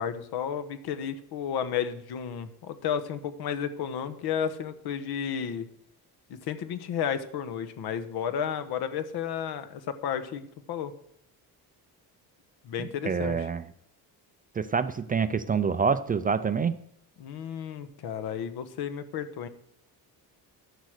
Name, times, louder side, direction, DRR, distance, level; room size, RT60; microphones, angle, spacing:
voice 1, 0.0-5.7 6.4-10.9 12.6-13.5 17.2-19.5, left 8 dB, 70° left, 11 dB, 1.2 m, -32 dB
voice 2, 12.8-13.6 14.6-16.7, right 6 dB, 25° right, 12 dB, 0.4 m, -27 dB
11.5 x 8.1 x 6.6 m, 0.71 s
cardioid pair, 155°, 39 cm